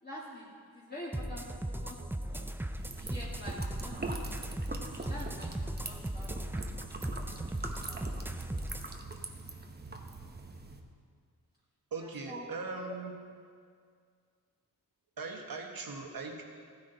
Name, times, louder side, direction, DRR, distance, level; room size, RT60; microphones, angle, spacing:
voice 1, 0.0-1.5 1.8-2.0 2.3-2.5 2.9-4.2 4.5-4.6 5.0-6.5 12.3-12.4, equal, 25° left, -8 dB, 2.1 m, -46 dB
sound 1, 1.1-8.9, right 1 dB, 5° right, 0.4 m, -38 dB
sound 2, 2.8-10.8, right 3 dB, 25° right, 0.9 m, -43 dB
voice 2, 11.9-13.2 15.2-16.4, right 4 dB, 60° right, 2 dB, 1.5 m, -39 dB
15.0 x 9.8 x 4.0 m, 2.1 s
wide cardioid pair, 105°, 39 cm